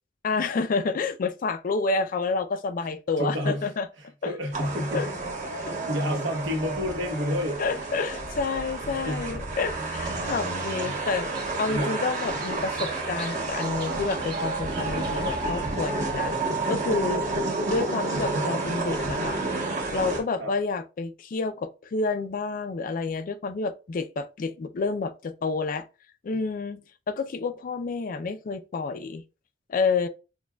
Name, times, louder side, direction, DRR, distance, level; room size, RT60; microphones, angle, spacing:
voice 1, 0.2-3.9 4.2-4.3 4.9-5.1 5.6-5.7 7.6-16.3 16.7-17.2 17.7-19.4 19.9-25.8 26.2-29.2 29.7-30.1, left 4 dB, 45° left, 0.4 m, -29 dB
voice 2, 3.2-3.7 4.0-5.1 5.9-7.6 8.8-9.4 10.1-10.2 10.8-11.0 11.7-11.9 20.4-20.5, left 1 dB, 80° right, 1.1 m, -30 dB
sound 1, 4.5-20.2, right 3 dB, 40° right, 1.0 m, -30 dB
Bird vocalization bird call bird song, 9.8-16.5, right 5 dB, 60° right, 1.3 m, -42 dB
6.1 x 2.2 x 2.2 m
head